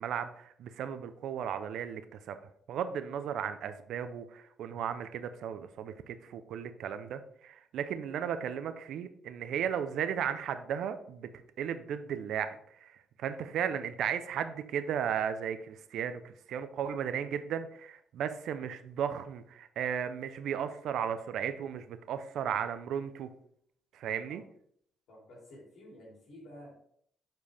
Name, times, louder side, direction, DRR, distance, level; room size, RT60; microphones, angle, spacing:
voice 1, 0.0-2.4 2.7-11.3 11.6-23.3 23.9-24.4, right 8 dB, 75° right, 10 dB, 0.6 m, -35 dB
voice 2, 25.1-26.9, equal, 80° left, -5 dB, 3.0 m, -52 dB
7.4 x 4.5 x 3.5 m, 0.66 s
cardioid pair, 90°, 0 cm